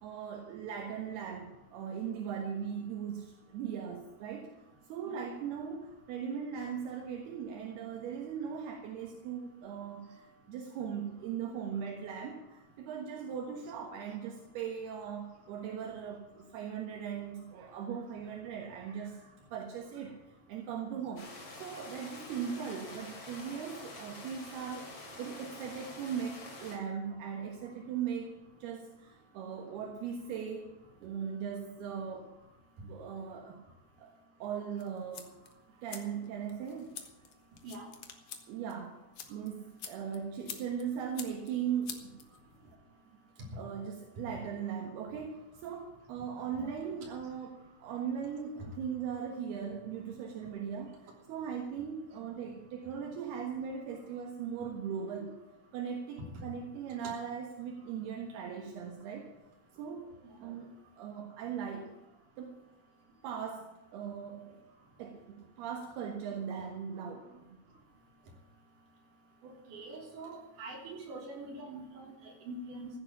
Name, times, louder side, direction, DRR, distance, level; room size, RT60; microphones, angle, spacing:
voice 1, 0.0-4.5 4.9-10.2 10.5-20.2 20.5-21.3 21.6-24.9 25.2-28.3 28.6-30.6 31.0-32.3 32.8-33.6 34.0-34.1 34.4-35.3 35.7-37.0 38.5-39.0 39.3-42.2 43.6-51.0 51.3-55.4 55.7-59.3 59.8-60.1 60.4-61.9 62.4-62.6 63.2-64.6 65.0-67.6, right 7 dB, 75° right, 2 dB, 3.3 m, -39 dB
sound 1, 21.2-26.8, left 2 dB, 30° left, 3.5 m, -47 dB
sound 2, 34.8-42.7, left 7 dB, 60° left, 1.6 m, -49 dB
voice 2, 69.4-72.9, right 2 dB, 55° right, 0 dB, 4.6 m, -44 dB
15.0 x 9.8 x 7.2 m, 1.0 s
omnidirectional pair, 4.7 m